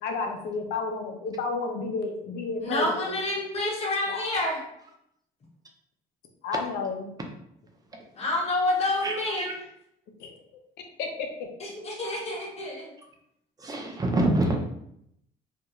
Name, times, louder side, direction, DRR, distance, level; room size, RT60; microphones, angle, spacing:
voice 1, 0.0-2.9 4.1-4.2 6.4-7.2 10.2-10.4 11.0-11.3, left 4 dB, 75° left, 3 dB, 0.6 m, -31 dB
voice 2, 2.6-4.6 8.2-9.5 11.6-12.9, left 2 dB, 40° left, -2 dB, 1.0 m, -28 dB
voice 3, 13.6-14.6, right 1 dB, 20° right, 2 dB, 0.5 m, -25 dB
2.5 x 2.3 x 2.9 m, 0.76 s
cardioid pair, 110°, 17 cm